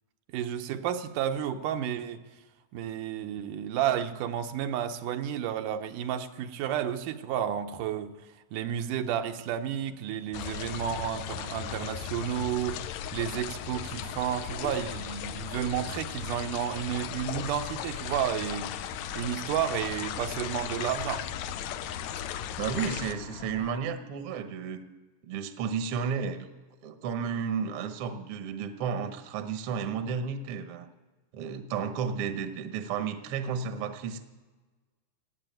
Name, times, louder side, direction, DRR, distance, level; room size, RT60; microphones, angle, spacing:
voice 1, 0.3-2.2 2.7-8.2 8.5-21.2, right 10 dB, 80° right, 6 dB, 2.4 m, -32 dB
sound 1, 10.3-23.1, left 10 dB, 80° left, 1.8 m, -37 dB
sound 2, 18.2-23.8, left 5 dB, 60° left, 1.9 m, -46 dB
voice 2, 22.6-24.8 25.2-26.5 26.8-30.9 31.3-34.2, right 6 dB, 60° right, 8 dB, 1.5 m, -32 dB
17.5 x 7.9 x 9.0 m, 1.3 s
omnidirectional pair, 3.6 m